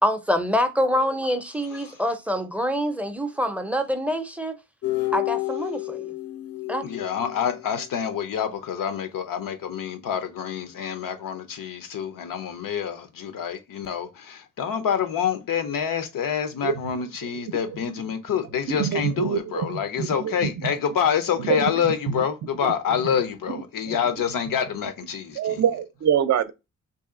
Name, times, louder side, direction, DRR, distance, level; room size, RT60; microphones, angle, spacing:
voice 1, 0.0-4.6 5.1-6.1 6.7-6.8, equal, 5° right, 0.5 m, -25 dB
sound 1, 4.8-8.1, left 19 dB, 50° left, 0.5 m, -30 dB
voice 2, 6.8-25.6, left 8 dB, 85° left, 0.7 m, -27 dB
voice 3, 18.8-20.7 21.4-21.7 22.1-22.2 22.6-22.7 23.0-23.2 23.5-24.0 25.4-26.5, right 8 dB, 60° right, 0.5 m, -25 dB
3.2 x 2.7 x 3.6 m
wide cardioid pair, 105°, 32 cm